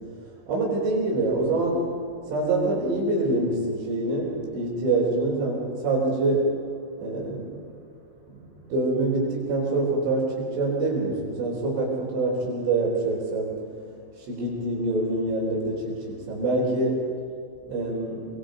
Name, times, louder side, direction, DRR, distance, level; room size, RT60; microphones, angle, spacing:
voice 1, 0.5-1.9 2.3-6.5 7.0-7.7 8.3-13.6 14.2-17.0 17.7-18.3, right 2 dB, 75° right, -7 dB, 6.6 m, -25 dB
26.5 x 24.5 x 5.2 m, 2.4 s
omnidirectional pair, 5.7 m